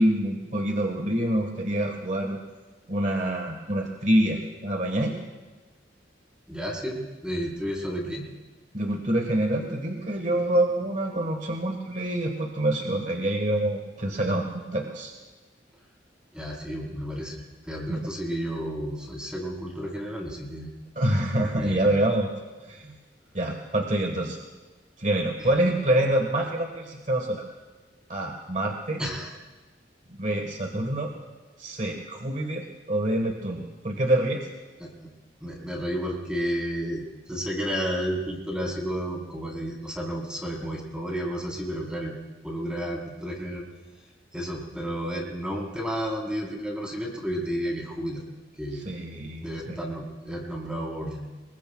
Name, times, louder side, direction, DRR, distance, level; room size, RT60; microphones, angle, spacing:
voice 1, 0.0-2.4 2.9-5.2 8.7-15.1 17.9-18.0 21.0-22.3 22.7-23.0 23.3-24.4 25.0-27.4 28.1-29.0 30.1-31.1 31.6-34.5 48.8-49.8, right 1 dB, 45° right, 2 dB, 1.4 m, -26 dB
voice 2, 6.5-8.3 16.3-20.7 21.5-22.0 25.4-25.5 29.0-29.3 34.8-35.1 35.4-42.1 42.4-43.6 44.3-48.2 48.6-48.8 49.4-51.3, equal, 5° right, -3 dB, 3.7 m, -32 dB
26.0 x 21.5 x 2.3 m, 1.2 s
head